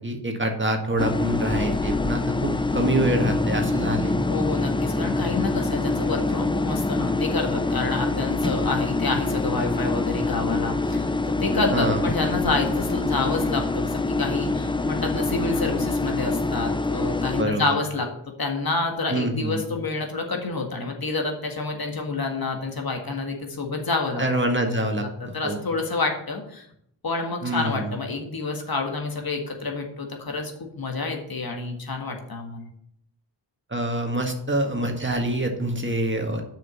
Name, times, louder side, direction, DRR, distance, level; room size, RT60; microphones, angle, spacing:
voice 1, 0.0-4.1 11.7-12.1 17.4-17.8 19.1-19.7 24.2-25.6 27.4-27.9 33.7-36.4, right 1 dB, 25° right, 3 dB, 1.6 m, -26 dB
sound 1, 1.0-17.4, left 2 dB, 10° left, 0.5 m, -25 dB
voice 2, 4.3-18.1 18.4-24.2 25.0-26.7 27.0-32.7, left 3 dB, 50° left, 3 dB, 1.7 m, -28 dB
6.4 x 5.1 x 7.0 m, 0.71 s
cardioid pair, 55°, 45 cm